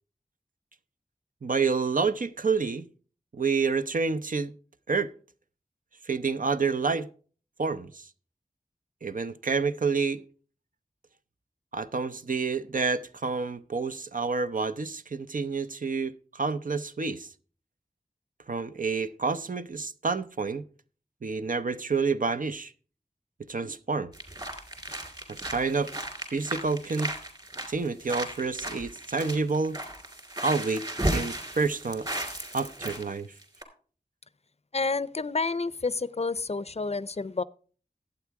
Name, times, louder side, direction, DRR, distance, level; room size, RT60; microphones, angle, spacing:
voice 1, 1.4-2.9 3.3-4.5 4.9-5.1 6.1-7.1 7.6-8.0 9.0-10.2 11.7-17.3 18.5-20.6 21.2-22.7 23.5-24.1 25.3-25.9 26.3-27.1 27.7-29.8 30.4-30.8 31.1-32.1 32.5-33.3, right 4 dB, 65° right, 0.6 m, -28 dB
sound 1, 24.1-33.0 33.4-33.6, right 1 dB, 30° right, 3.1 m, -35 dB
voice 2, 34.7-37.4, left 3 dB, 45° left, 0.5 m, -29 dB
11.5 x 8.4 x 4.7 m
wide cardioid pair, 55°, 15 cm